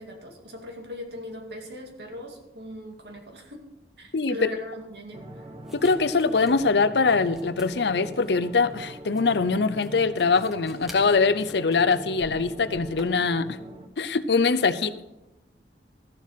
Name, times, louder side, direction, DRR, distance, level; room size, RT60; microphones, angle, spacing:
voice 1, 0.0-3.7 4.0-5.4 14.7-14.9, left 1 dB, 70° right, 2 dB, 2.3 m, -40 dB
sound 1, 5.1-13.9, right 1 dB, 30° right, 1.0 m, -42 dB
sound 2, 5.6-13.5, left 1 dB, ahead, 1.5 m, -50 dB
voice 2, 5.7-13.6 14.0-15.0, left 4 dB, 75° left, 13 dB, 0.7 m, -23 dB
14.0 x 7.4 x 5.8 m, 0.94 s
head